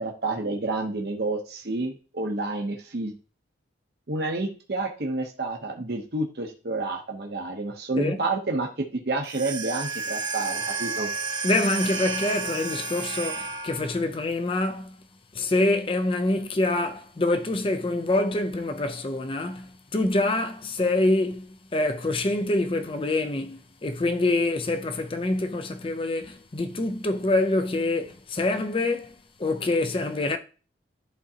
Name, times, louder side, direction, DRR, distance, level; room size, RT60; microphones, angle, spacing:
voice 1, 0.0-3.1 4.1-11.1, right 2 dB, 60° right, 0.8 m, -29 dB
sound 1, 9.2-14.0, right 4 dB, 25° right, 0.9 m, -31 dB
voice 2, 11.4-15.0 15.3-30.4, left 2 dB, 30° left, 0.4 m, -26 dB
11.0 x 3.8 x 2.8 m
head